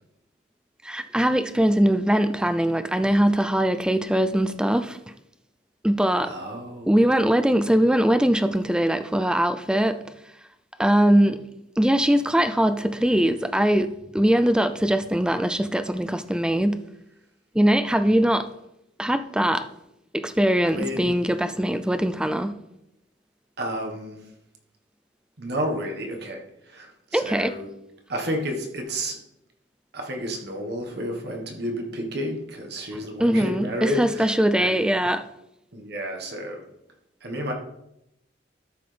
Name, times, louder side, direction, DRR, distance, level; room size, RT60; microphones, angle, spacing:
voice 1, 0.8-5.0 5.8-6.3 6.9-10.0 10.8-11.5 11.8-16.8 17.5-18.5 19.0-19.7 20.1-22.6 27.1-27.5 33.2-35.3, right 1 dB, 5° right, 0.4 m, -21 dB
voice 2, 6.2-7.1 20.6-21.2 23.6-24.3 25.4-27.7 28.1-29.2 29.9-34.9 35.7-36.6 37.2-37.5, equal, 55° right, 1.4 m, -31 dB
13.0 x 5.8 x 3.4 m
head